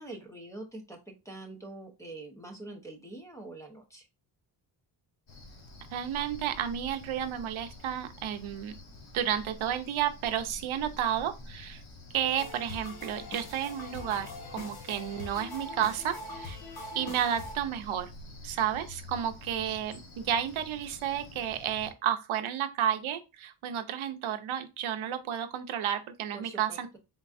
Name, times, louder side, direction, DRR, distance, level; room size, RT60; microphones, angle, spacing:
voice 1, 0.0-4.1 26.3-27.0, right 2 dB, 5° left, 0.8 m, -45 dB
Cricket, 5.3-21.9, left 2 dB, 75° left, 1.4 m, -49 dB
voice 2, 5.9-8.7 9.1-11.8 12.1-16.6 16.9-18.1 18.4-26.9, right 10 dB, 85° right, 0.7 m, -32 dB
sound 1, 12.4-17.6, left 2 dB, 50° left, 1.1 m, -43 dB
3.9 x 3.7 x 2.5 m
wide cardioid pair, 150°, 47 cm